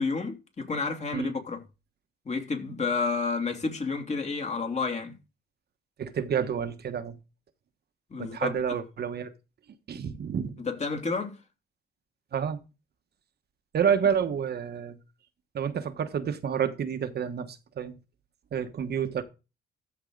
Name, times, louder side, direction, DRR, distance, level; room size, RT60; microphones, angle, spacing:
voice 1, 0.0-1.6 2.2-5.2 8.1-8.5 10.6-11.4, left 4 dB, 35° left, 2.8 m, -30 dB
voice 2, 6.0-7.2 8.2-9.3 9.9-10.6 12.3-12.6 13.7-15.0 15.5-18.0 18.5-19.2, right 7 dB, 55° right, 1.2 m, -29 dB
13.5 x 4.6 x 3.8 m
cardioid pair, 90°, 20 cm